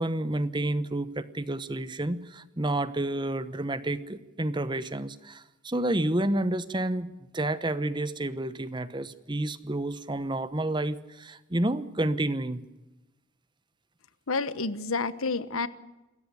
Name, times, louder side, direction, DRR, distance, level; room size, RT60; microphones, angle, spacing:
voice 1, 0.0-12.6, right 1 dB, 20° right, 14 dB, 1.0 m, -30 dB
voice 2, 14.3-15.7, left 3 dB, 85° left, 15 dB, 1.2 m, -29 dB
28.0 x 14.0 x 9.9 m, 1.0 s
head